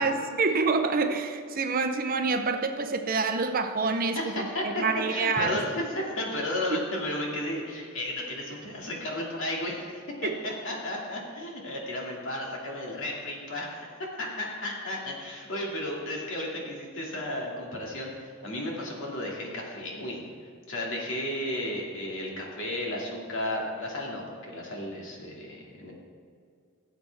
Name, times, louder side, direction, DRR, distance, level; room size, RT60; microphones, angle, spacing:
voice 1, 0.0-5.6 10.2-10.3, right 4 dB, 40° right, 7 dB, 0.7 m, -27 dB
voice 2, 4.2-4.8 5.1-13.8 14.2-20.2 20.7-25.9, left 1 dB, 60° left, -2 dB, 2.3 m, -33 dB
16.5 x 7.7 x 3.5 m, 2.3 s
head